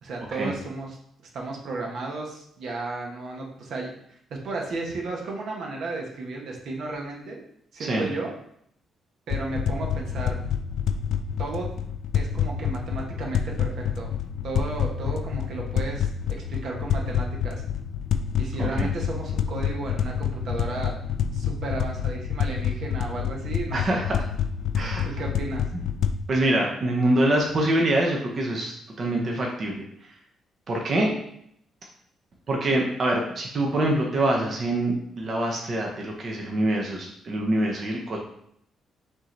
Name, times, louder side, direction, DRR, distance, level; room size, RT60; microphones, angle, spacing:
voice 1, 0.0-1.0 1.3-3.9 4.3-7.4 7.7-8.3 9.3-10.4 11.4-11.7 12.1-14.1 14.4-16.1 16.5-17.6 18.4-20.9 21.3-24.0 25.0-25.7, right 3 dB, 65° right, 0 dB, 1.0 m, -33 dB
sound 1, 9.3-26.1, left 8 dB, 70° left, 0.3 m, -28 dB
voice 2, 23.7-24.2 24.7-25.1 25.7-25.8 26.3-30.2 30.7-31.1 32.5-38.2, right 1 dB, 45° right, -1 dB, 0.8 m, -25 dB
5.3 x 2.9 x 3.1 m, 0.70 s
cardioid pair, 90°, 0 cm